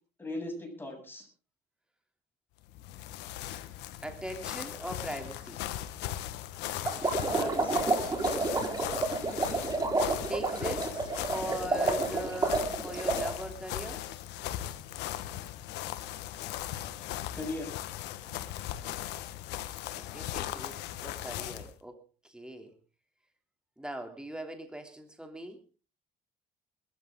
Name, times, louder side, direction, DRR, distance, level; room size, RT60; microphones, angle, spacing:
voice 1, 0.2-1.3 7.3-7.8 17.0-17.7 18.2-18.3, left 2 dB, 10° left, 2 dB, 7.8 m, -38 dB
sound 1, 2.6-21.7, left 13 dB, 90° left, 1.4 m, -38 dB
voice 2, 4.0-5.6 10.3-14.0 19.9-22.7 23.8-25.6, right 1 dB, 5° right, 5 dB, 3.1 m, -40 dB
sound 2, 6.9-13.3, right 3 dB, 25° right, 4.4 m, -30 dB
21.5 x 14.0 x 3.8 m, 0.35 s
cardioid pair, 110°, 17 cm